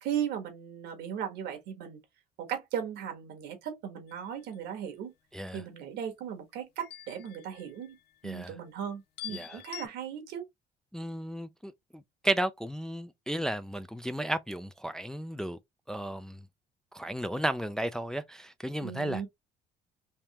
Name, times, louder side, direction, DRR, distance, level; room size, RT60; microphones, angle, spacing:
voice 1, 0.0-2.0 2.4-5.1 5.5-8.0 8.2-10.5 18.8-19.3, right 9 dB, 80° right, 1.3 m, -37 dB
sound 1, 4.1-4.6 6.8-8.2 9.2-9.9, left 13 dB, 75° left, 0.4 m, -45 dB
voice 2, 8.2-8.5 9.3-9.6 10.9-15.6 15.9-16.4 16.9-19.2, right 1 dB, 5° left, 0.3 m, -34 dB
3.5 x 2.8 x 2.9 m
cardioid pair, 110°, 17 cm